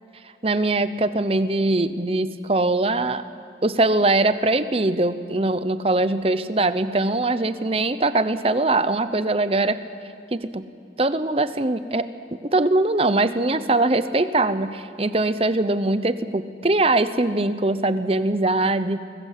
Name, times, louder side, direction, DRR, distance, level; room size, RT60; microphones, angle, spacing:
voice 1, 0.4-3.2 3.6-9.8 10.3-10.7 11.0-12.1 12.5-19.0, right 2 dB, 35° right, 12 dB, 0.8 m, -22 dB
23.0 x 20.0 x 8.2 m, 2.5 s
head